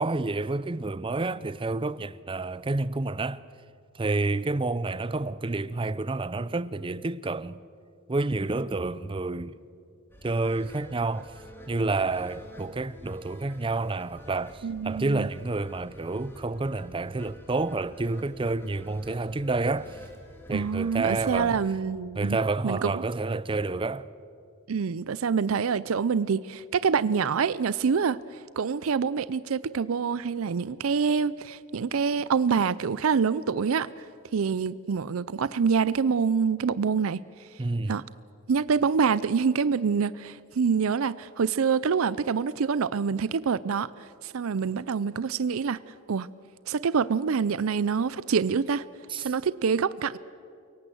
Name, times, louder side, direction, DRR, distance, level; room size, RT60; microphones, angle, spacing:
voice 1, 0.0-3.4 3.9-7.5 8.1-9.6 10.2-11.3 11.7-20.0 20.5-21.6 22.2-24.1 37.6-37.9 49.1-49.3, right 3 dB, 25° right, 0.6 m, -29 dB
sound 1, 10.1-21.7, left 1 dB, 10° left, 2.6 m, -49 dB
voice 2, 14.6-15.3 20.5-22.4 22.6-23.0 24.7-28.2 28.6-34.0 34.3-37.2 37.9-38.0 38.5-45.8 46.1-46.3 46.7-48.8 49.2-50.2, right 6 dB, 75° right, 0.5 m, -26 dB
29.0 x 18.0 x 7.7 m
head